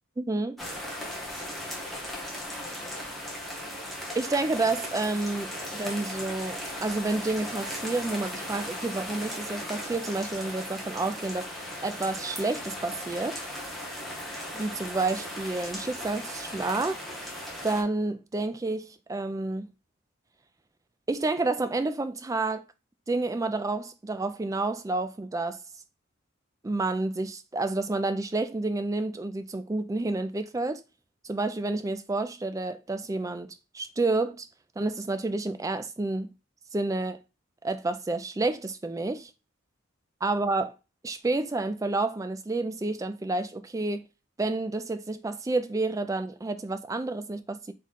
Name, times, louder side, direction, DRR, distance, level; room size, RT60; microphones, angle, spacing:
voice 1, 0.2-0.6 4.1-13.4 14.5-17.0 17.6-19.7 21.1-22.6 23.1-25.6 26.6-30.8 31.2-34.5 34.8-36.3 36.7-37.2 37.6-39.3 40.2-40.7 41.0-44.0 44.4-47.7, right 2 dB, 15° right, 0.3 m, -29 dB
sound 1, 0.6-17.8, left 1 dB, ahead, 0.9 m, -37 dB
3.7 x 3.1 x 4.0 m
head